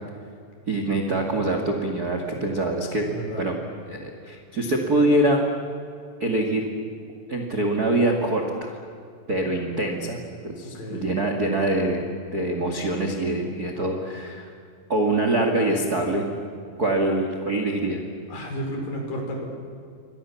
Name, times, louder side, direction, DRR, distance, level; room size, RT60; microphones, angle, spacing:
voice 1, 0.7-3.0 3.4-3.5 3.9-5.4 6.2-6.7 7.3-8.8 9.3-10.2 10.4-12.0 12.3-14.5 14.9-16.3 16.8-18.0, right 1 dB, 35° right, 3 dB, 1.5 m, -24 dB
voice 2, 3.0-3.5 10.6-11.1 18.3-19.5, equal, 50° left, 2 dB, 6.5 m, -32 dB
29.5 x 25.0 x 7.2 m, 2.4 s
omnidirectional pair, 5.4 m